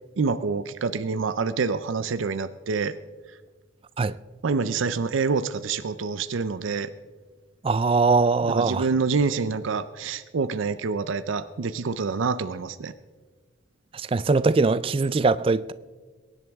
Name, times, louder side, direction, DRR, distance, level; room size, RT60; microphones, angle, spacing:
voice 1, 0.2-3.0 4.4-6.9 8.4-12.9, right 4 dB, 80° right, 0.5 m, -27 dB
voice 2, 7.6-8.8 13.9-15.7, right 4 dB, 25° right, 0.3 m, -21 dB
23.0 x 11.0 x 3.5 m
head